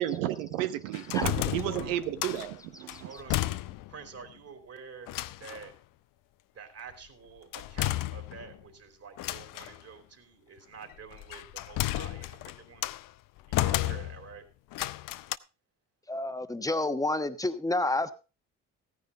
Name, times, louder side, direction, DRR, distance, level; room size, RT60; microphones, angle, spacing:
voice 1, 0.0-3.1, right 12 dB, 90° right, 1.0 m, -32 dB
sound 1, 0.9-2.5 2.9-4.0 4.3-4.4 5.1-5.7 7.5-8.6 9.2-9.8 10.9-13.1 13.5-14.4 14.7-15.4, left 16 dB, 65° left, 0.6 m, -32 dB
voice 2, 1.3-2.0 3.0-3.6 3.9-5.7 6.5-12.9 13.5-14.4, right 6 dB, 40° right, 3.2 m, -47 dB
voice 3, 16.1-18.1, left 2 dB, 10° left, 1.2 m, -29 dB
14.5 x 10.0 x 4.0 m
supercardioid pair, 70°, 36 cm